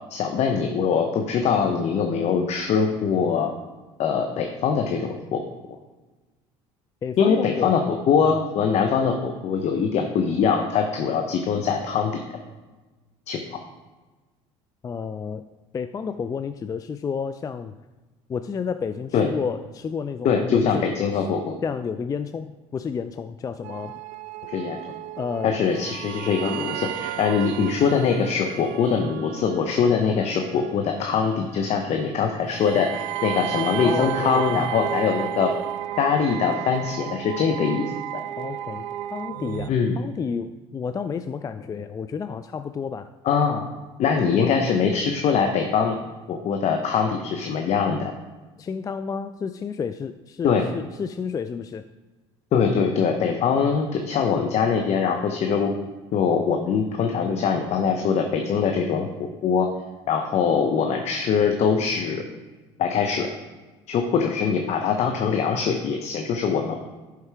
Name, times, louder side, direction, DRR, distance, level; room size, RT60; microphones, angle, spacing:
voice 1, 0.1-3.5 4.0-5.4 7.2-7.8 8.1-12.2 13.3-13.4 19.1-19.3 20.2-21.6 24.5-24.8 25.4-35.5 36.0-37.9 39.7-40.0 43.2-43.7 44.0-46.0 46.3-48.1 50.4-50.6 52.5-55.7 56.1-59.7 60.1-62.2 62.8-63.3 63.9-66.8, left 6 dB, 55° left, 4 dB, 0.8 m, -22 dB
voice 2, 7.0-8.0 14.8-15.4 15.7-17.8 18.3-20.9 21.6-24.0 25.2-25.6 33.8-34.7 38.4-43.1 48.6-51.8, left 6 dB, 25° left, 10 dB, 0.3 m, -31 dB
sound 1, 23.6-39.7, right 12 dB, 70° right, 0.4 m, -33 dB
11.5 x 4.6 x 3.4 m, 1.2 s
hypercardioid pair, 75°, 14 cm